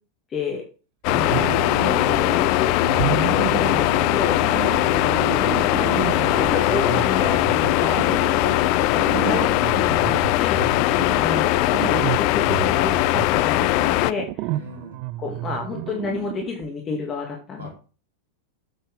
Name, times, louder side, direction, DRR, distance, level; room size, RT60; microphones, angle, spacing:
voice 1, 0.3-0.6 1.1-1.5 1.8-4.5 5.7-5.9 6.3-10.6 11.2-14.5 15.2-17.7, left 4 dB, 25° left, 0 dB, 2.1 m, -30 dB
sound 1, 1.0-14.1, left 18 dB, 45° left, 0.3 m, -20 dB
sound 2, 1.1-2.4 2.8-16.7, right 17 dB, 45° right, 0.4 m, -31 dB
voice 2, 4.6-5.0 14.5-15.0 17.6-17.7, right 2 dB, 70° right, 1 dB, 2.0 m, -39 dB
8.1 x 7.8 x 3.5 m, 0.35 s
figure-of-eight pair, 90°, 0 cm